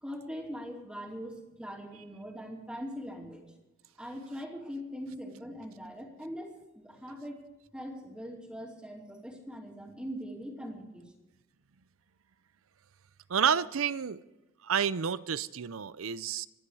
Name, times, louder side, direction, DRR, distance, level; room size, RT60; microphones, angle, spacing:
voice 1, 0.0-3.4 4.0-7.4 7.7-11.1, equal, 5° right, 0 dB, 2.6 m, -41 dB
voice 2, 13.3-14.2 14.6-16.5, right 7 dB, 80° right, 17 dB, 0.6 m, -29 dB
25.5 x 10.0 x 4.8 m, 1.1 s
head